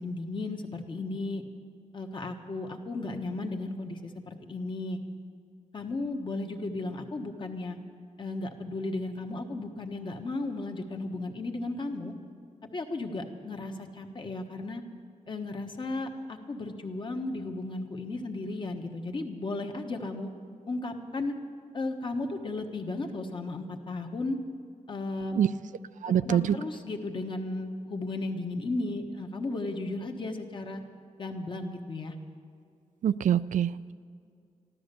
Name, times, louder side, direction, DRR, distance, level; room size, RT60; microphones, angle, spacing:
voice 1, 0.0-1.4 1.9-5.0 5.7-7.8 8.2-12.1 12.7-14.8 15.3-20.3 20.7-21.3 21.7-24.4 24.9-25.5 26.0-30.8 31.2-32.1, left 2 dB, 40° left, 4 dB, 1.2 m, -35 dB
voice 2, 26.0-26.6 33.0-33.9, right 9 dB, 85° right, 15 dB, 0.4 m, -25 dB
14.0 x 12.5 x 6.7 m, 2.3 s
wide cardioid pair, 175°, 13 cm